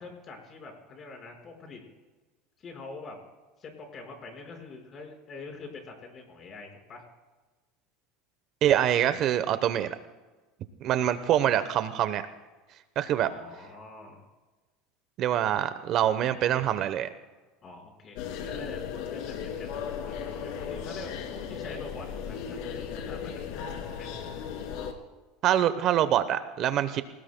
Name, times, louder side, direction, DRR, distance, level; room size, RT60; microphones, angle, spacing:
voice 1, 0.0-1.8 2.6-3.2 3.6-7.0 13.1-14.2 17.6-24.1, left 3 dB, 35° left, 2 dB, 5.1 m, -45 dB
voice 2, 8.6-10.0 10.8-12.2 13.0-13.3 15.2-17.1 25.4-27.0, right 11 dB, 45° right, 11 dB, 0.9 m, -25 dB
sound 1, 18.2-24.9, left 7 dB, 65° left, 2.6 m, -36 dB
28.5 x 18.5 x 2.2 m, 1.2 s
supercardioid pair, 135°, 0 cm